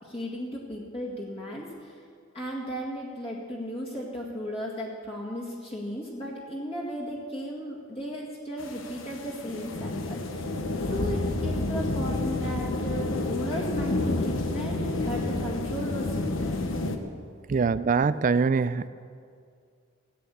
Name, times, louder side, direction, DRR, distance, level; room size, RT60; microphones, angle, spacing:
voice 1, 0.0-2.0 2.3-10.5 10.9-16.5, equal, 30° left, -4 dB, 2.0 m, -35 dB
sound 1, 8.6-17.0, left 2 dB, 70° left, 1.1 m, -29 dB
voice 2, 17.5-18.9, right 5 dB, 40° right, 15 dB, 0.3 m, -23 dB
16.0 x 9.1 x 8.4 m, 2.2 s
head